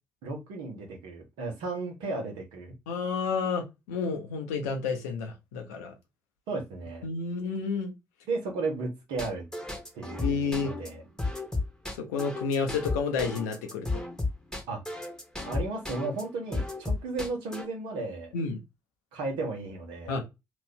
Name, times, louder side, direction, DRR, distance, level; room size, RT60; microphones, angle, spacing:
voice 1, 0.2-2.7 6.5-7.0 8.3-9.5 9.9-11.0 14.7-14.8 15.5-18.3 19.1-20.1, right 3 dB, 65° right, 1.1 m, -34 dB
voice 2, 2.9-5.9 7.0-7.9 10.2-10.7 12.0-14.0 18.3-18.6 20.1-20.2, left 5 dB, 75° left, 0.8 m, -30 dB
sound 1, 9.2-16.2 16.5-17.7, left 2 dB, 5° left, 1.1 m, -33 dB
3.0 x 2.5 x 3.5 m
figure-of-eight pair, 40°, 9 cm